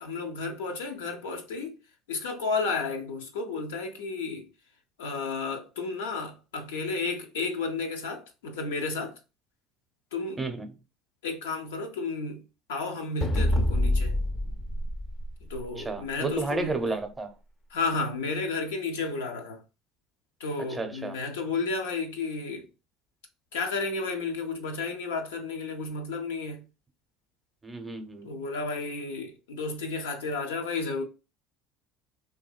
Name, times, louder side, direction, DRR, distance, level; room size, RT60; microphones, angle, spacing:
voice 1, 0.0-1.8 2.1-4.5 5.0-9.1 10.1-10.4 11.2-12.4 12.7-14.2 15.5-16.8 17.7-19.6 20.4-22.7 23.5-26.6 28.2-31.0, left 4 dB, 85° left, 0.6 m, -32 dB
voice 2, 10.4-10.7 15.8-17.3 20.7-21.2 27.6-28.3, right 3 dB, 20° right, 0.6 m, -32 dB
sound 1, 13.2-15.9, left 1 dB, 35° left, 0.5 m, -26 dB
2.6 x 2.6 x 2.3 m
hypercardioid pair, 75°, 0 cm